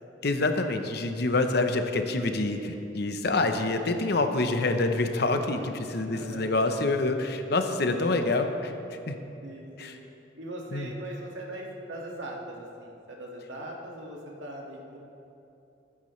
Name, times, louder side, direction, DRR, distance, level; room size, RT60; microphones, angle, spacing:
voice 1, 0.2-8.7 9.1-9.2 9.8-9.9 10.7-10.9, left 2 dB, 55° left, 6 dB, 0.8 m, -26 dB
voice 2, 6.1-6.6 9.4-10.0 10.4-15.0, right 1 dB, 80° right, -2 dB, 2.0 m, -40 dB
20.0 x 9.7 x 3.2 m, 2.8 s
head